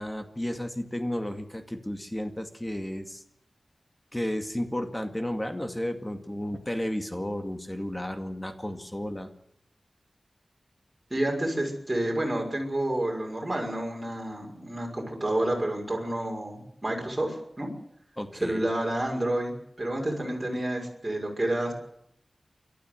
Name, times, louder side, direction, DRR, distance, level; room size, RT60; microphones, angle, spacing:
voice 1, 0.0-3.2 4.1-9.3 18.2-18.7, left 1 dB, 15° left, 6 dB, 2.2 m, -33 dB
voice 2, 11.1-17.7 18.4-21.7, right 1 dB, 20° right, -1 dB, 6.1 m, -29 dB
29.0 x 12.5 x 7.9 m, 0.76 s
wide cardioid pair, 75°, 0 cm